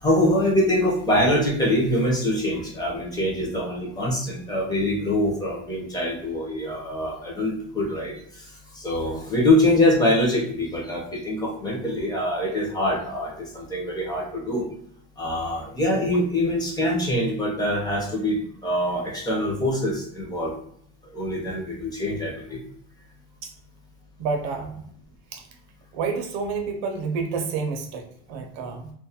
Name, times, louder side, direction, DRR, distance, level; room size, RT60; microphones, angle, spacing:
voice 1, 0.0-8.1 8.8-14.6 15.2-18.4 18.6-20.5 21.1-22.6, left 1 dB, 15° left, -4 dB, 0.5 m, -24 dB
voice 2, 24.2-24.8 25.3-25.4 25.9-28.9, right 5 dB, 50° right, 4 dB, 0.4 m, -29 dB
2.2 x 2.1 x 2.7 m, 0.65 s
supercardioid pair, 155°, 30 cm